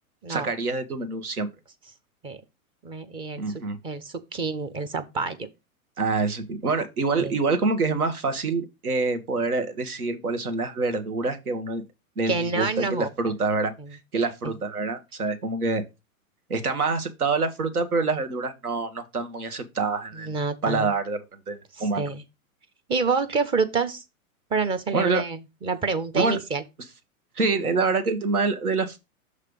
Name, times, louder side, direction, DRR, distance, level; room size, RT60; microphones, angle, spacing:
voice 1, 0.3-1.5 3.4-3.8 6.0-11.8 12.2-15.8 16.5-20.3 20.6-21.2 21.5-22.1 24.9-25.2 26.1-26.4 27.3-29.0, right 3 dB, 85° right, 1.4 m, -26 dB
voice 2, 2.8-3.4 3.8-5.5 7.2-7.3 12.3-13.1 13.8-13.9 14.4-14.5 20.1-20.9 21.7-22.2 22.9-24.0 24.5-26.6, right 4 dB, 10° right, 0.4 m, -27 dB
6.7 x 3.2 x 5.3 m
hypercardioid pair, 110°, 43 cm